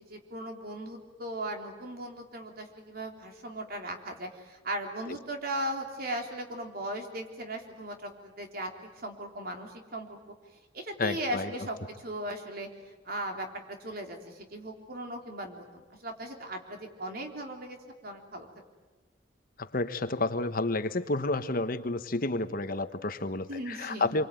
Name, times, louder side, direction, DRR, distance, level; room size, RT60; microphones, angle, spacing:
voice 1, 0.0-10.2 10.7-18.5 23.5-24.2, right 1 dB, 55° right, 3 dB, 3.6 m, -38 dB
voice 2, 11.0-11.7 19.6-24.3, left 2 dB, 50° left, 10 dB, 1.1 m, -30 dB
27.0 x 23.5 x 9.2 m, 1.2 s
head